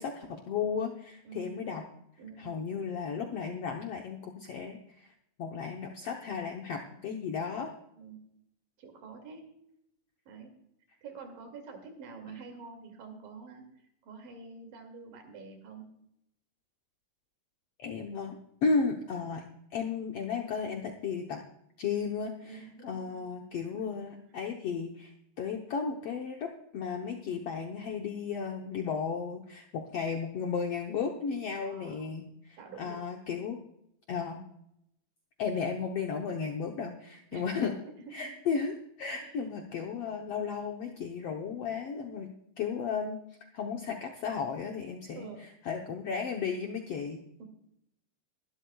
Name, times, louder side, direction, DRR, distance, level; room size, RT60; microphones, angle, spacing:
voice 1, 0.0-1.8 2.4-5.1 5.4-7.7 17.8-18.4 18.6-19.4 19.7-21.4 21.8-33.6 34.1-34.4 35.4-37.7 38.1-42.3 42.6-43.2 43.5-45.3 45.6-47.2, left 5 dB, 90° left, 2 dB, 1.3 m, -34 dB
voice 2, 1.3-1.6 2.2-2.6 8.0-8.2 8.8-9.6 10.3-10.5 11.0-13.6 14.0-15.9 22.5-23.3 23.7-23.9 31.6-32.3 32.6-33.0 37.3-38.3 39.1-39.5 45.1-45.5 47.4-47.5, right 5 dB, 70° right, 4 dB, 3.9 m, -47 dB
22.5 x 12.0 x 2.3 m, 0.77 s
omnidirectional pair, 4.2 m